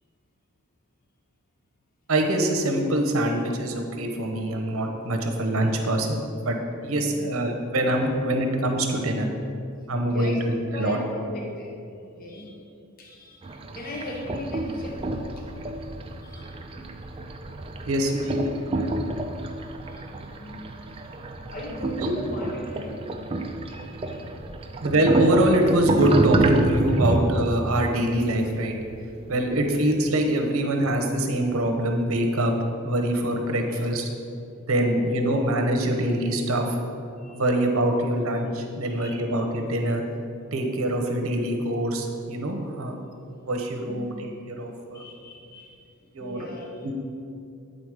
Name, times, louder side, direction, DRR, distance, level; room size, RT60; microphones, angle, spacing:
voice 1, 2.1-6.6 6.8-9.3 9.9-10.4 10.8-11.0 17.8-19.0 22.0-22.1 24.8-28.7 29.3-32.5 32.8-34.1 34.6-36.8 37.3-40.0 40.5-43.0 43.4-45.0 46.1-46.5 46.8-46.9, right 1 dB, 85° right, 3 dB, 0.9 m, -24 dB
voice 2, 6.9-7.3 10.1-10.4 10.7-11.7 12.2-12.5 13.0-13.5 13.7-15.1 15.4-15.5 16.2-16.5 17.7-17.9 19.6-20.8 21.5-23.0 23.7-24.3 33.6-33.8 34.8-35.1 37.2-37.4 38.8-39.1 43.9-44.1 44.9-45.8 46.2-46.9, left 1 dB, 45° left, -1 dB, 0.8 m, -38 dB
sound 1, 13.4-29.5, right 2 dB, 25° right, 0.4 m, -28 dB
8.8 x 4.0 x 4.9 m, 2.5 s
head